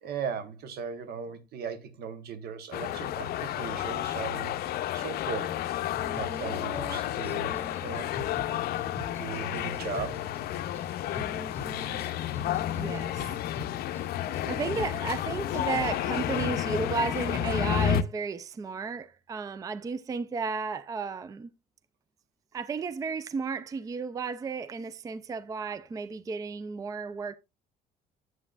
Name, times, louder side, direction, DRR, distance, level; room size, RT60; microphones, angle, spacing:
voice 1, 0.0-5.5 6.1-7.5 7.8-8.1 8.5-8.6 9.2-10.3, right 6 dB, 70° right, 1.0 m, -38 dB
sound 1, 2.7-18.0, left 11 dB, 70° left, 0.5 m, -31 dB
Female singing, 6.0-17.8, left 3 dB, 10° left, 2.0 m, -42 dB
voice 2, 12.7-13.3 14.5-21.5 22.5-27.4, right 4 dB, 20° right, 0.3 m, -33 dB
7.8 x 7.7 x 2.4 m
cardioid pair, 110°, 17 cm